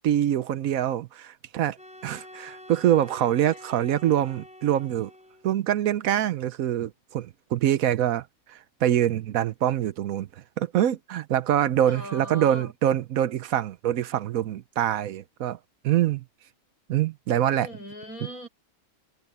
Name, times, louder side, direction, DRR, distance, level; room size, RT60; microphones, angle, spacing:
voice 1, 0.0-1.8 2.0-5.1 5.4-10.3 10.6-15.6 15.8-16.2 16.9-17.7, right 11 dB, 75° right, 1.1 m, -25 dB
sound 1, 1.7-5.7, left 1 dB, 5° right, 4.3 m, -47 dB
voice 2, 11.9-12.7 17.6-18.5, equal, 75° left, 6.6 m, -39 dB
omnidirectional pair, 1.5 m